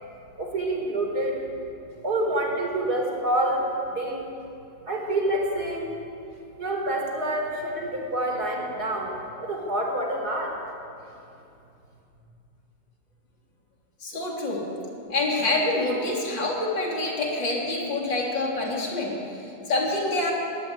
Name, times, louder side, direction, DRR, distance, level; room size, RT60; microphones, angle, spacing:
voice 1, 0.4-1.4 2.0-4.3 4.9-5.9 6.6-10.5, right 1 dB, 55° right, 1 dB, 4.4 m, -27 dB
voice 2, 14.0-14.7 15.1-20.3, left 2 dB, 80° left, -2 dB, 4.2 m, -27 dB
21.0 x 17.5 x 8.9 m, 2.7 s
omnidirectional pair, 2.0 m